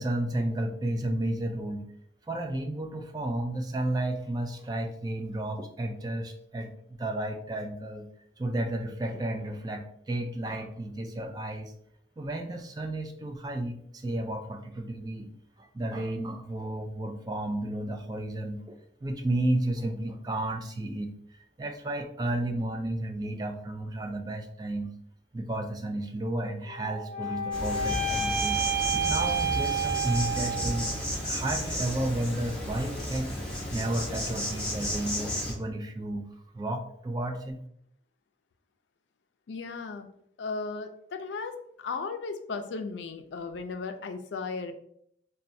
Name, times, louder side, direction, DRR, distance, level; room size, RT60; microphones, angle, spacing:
voice 1, 0.0-1.9 2.3-8.1 8.4-11.7 12.2-15.3 15.6-18.8 19.0-24.9 25.3-28.6 29.1-33.3 33.7-36.3 36.5-37.6, right 1 dB, 20° right, 5 dB, 0.3 m, -32 dB
sound 1, 26.7-31.0, right 4 dB, 80° right, 0.8 m, -30 dB
Insect, 27.5-35.5, equal, 5° left, 0.8 m, -33 dB
voice 2, 39.5-40.1 40.4-44.7, left 4 dB, 80° left, 6 dB, 0.4 m, -36 dB
4.1 x 2.2 x 2.6 m, 0.70 s
head